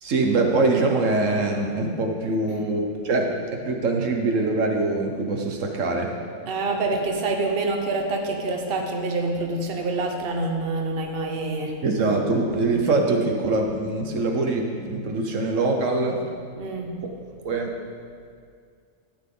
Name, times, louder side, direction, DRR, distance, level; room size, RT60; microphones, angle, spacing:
voice 1, 0.0-3.4 3.6-6.1 11.8-16.2 17.4-17.7, right 3 dB, 75° right, 2 dB, 1.4 m, -23 dB
voice 2, 2.2-2.7 6.5-11.8 16.6-17.0, right 3 dB, 50° right, 2 dB, 1.2 m, -27 dB
13.5 x 8.8 x 3.8 m, 2.2 s
omnidirectional pair, 1.3 m